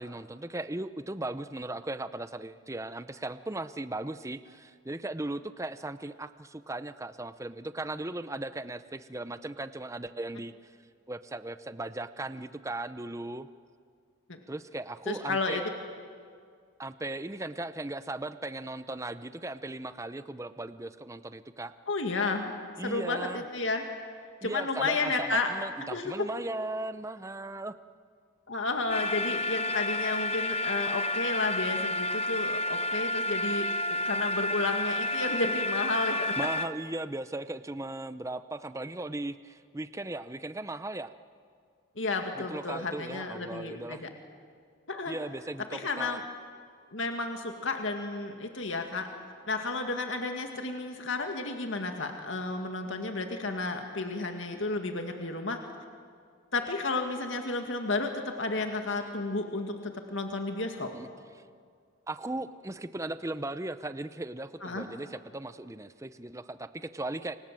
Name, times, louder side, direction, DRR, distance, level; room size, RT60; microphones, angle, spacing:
voice 1, 0.0-10.7 11.1-13.5 14.5-15.7 16.8-21.7 22.8-23.4 24.4-27.7 36.4-41.1 42.5-44.0 45.1-46.2 60.9-61.1 62.1-67.4, right 2 dB, 15° right, 12 dB, 0.6 m, -37 dB
voice 2, 15.1-15.6 21.9-22.5 22.8-23.8 24.4-25.5 25.8-26.3 28.5-36.4 42.0-44.1 44.9-45.2 45.7-46.2 46.9-49.1 49.5-55.6 56.5-60.9 64.6-64.9, left 3 dB, 70° left, 4 dB, 2.2 m, -32 dB
sound 1, 28.9-36.7, left 1 dB, 30° left, 1.0 m, -30 dB
29.0 x 25.5 x 7.6 m, 2.1 s
head